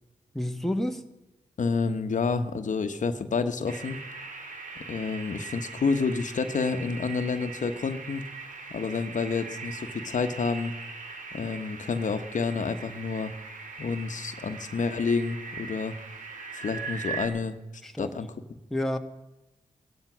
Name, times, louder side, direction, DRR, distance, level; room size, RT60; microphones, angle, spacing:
voice 1, 0.3-1.0 17.8-18.2 18.7-19.0, left 1 dB, ahead, 5 dB, 1.6 m, -29 dB
voice 2, 1.6-4.0 4.9-8.2 8.7-10.7 11.3-13.3 13.8-16.0 16.5-17.6 18.0-18.3, left 4 dB, 65° left, 8 dB, 1.2 m, -29 dB
sound 1, 3.7-17.3, right 4 dB, 75° right, 2.3 m, -40 dB
16.5 x 13.5 x 6.1 m, 0.99 s
cardioid pair, 55°, 14 cm